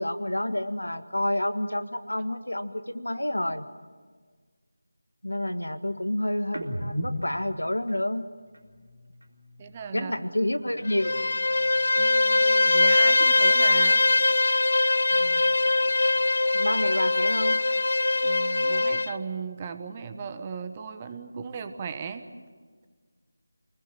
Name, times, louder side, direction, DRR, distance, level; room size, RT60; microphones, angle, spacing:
voice 1, 0.0-3.7 5.2-8.3 9.9-11.1 15.1-15.5 16.5-17.6, left 1 dB, 85° left, 10 dB, 1.6 m, -29 dB
sound 1, 6.5-10.1 10.4-12.2 12.5-14.4 14.7-16.6, equal, 75° right, 3.8 m, -41 dB
voice 2, 9.6-10.1 12.0-14.0 18.2-22.2, right 6 dB, 20° right, 9 dB, 1.2 m, -36 dB
Bowed string instrument, 10.9-19.2, left 2 dB, 60° left, 0.6 m, -22 dB
26.5 x 20.0 x 7.9 m, 1.5 s
figure-of-eight pair, 165°, 0 cm